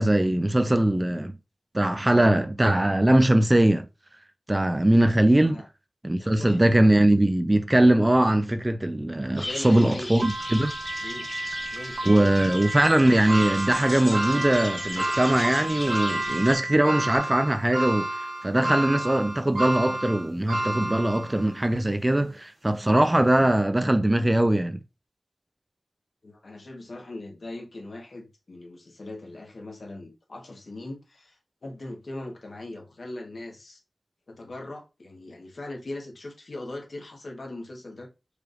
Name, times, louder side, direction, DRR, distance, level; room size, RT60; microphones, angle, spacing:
voice 1, 0.0-1.4 1.7-3.9 4.5-5.6 6.0-10.7 12.1-18.1 18.4-24.8, right 1 dB, 25° right, 0.6 m, -21 dB
voice 2, 6.2-6.6 9.3-10.1 11.0-11.3 11.7-12.6 26.2-33.8 34.3-38.1, left 2 dB, 70° left, 1.3 m, -40 dB
sound 1, 9.4-16.5, left 1 dB, 40° left, 1.6 m, -38 dB
Piano, 10.2-17.2, right 2 dB, 65° right, 1.3 m, -35 dB
sound 2, 13.3-21.6 22.1-22.2 23.4-23.5, right 1 dB, 80° right, 1.7 m, -30 dB
4.8 x 3.4 x 2.5 m
wide cardioid pair, 50°, 0 cm